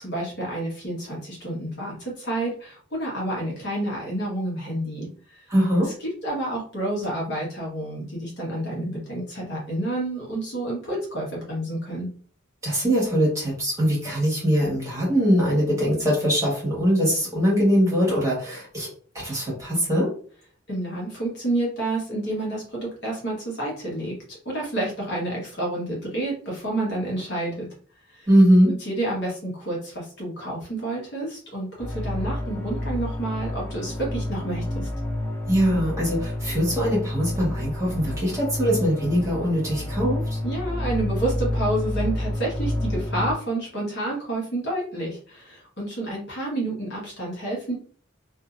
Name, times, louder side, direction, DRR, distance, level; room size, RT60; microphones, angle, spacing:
voice 1, 0.0-5.4 6.2-12.1 20.7-27.7 28.1-28.3 28.6-34.9 40.4-47.7, right 1 dB, 55° left, -3 dB, 1.2 m, -29 dB
voice 2, 5.5-5.9 12.6-18.9 19.2-20.1 28.3-28.7 35.5-40.4, equal, 15° right, -6 dB, 1.4 m, -22 dB
sound 1, 31.8-43.3, left 1 dB, 10° left, 0.5 m, -29 dB
2.7 x 2.6 x 2.4 m, 0.43 s
head